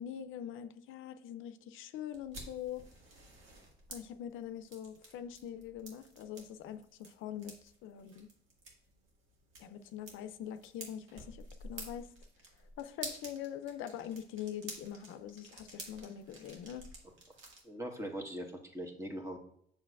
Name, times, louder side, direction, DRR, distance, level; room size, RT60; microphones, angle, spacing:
voice 1, 0.0-2.8 3.9-8.3 9.6-12.1 12.8-16.8, left 9 dB, 90° left, 10 dB, 0.5 m, -43 dB
sound 1, 2.1-17.6, right 2 dB, 80° right, 1.8 m, -51 dB
voice 2, 17.6-19.4, equal, 15° right, 2 dB, 1.3 m, -41 dB
7.4 x 6.4 x 2.4 m, 0.68 s
cardioid pair, 90°, 20 cm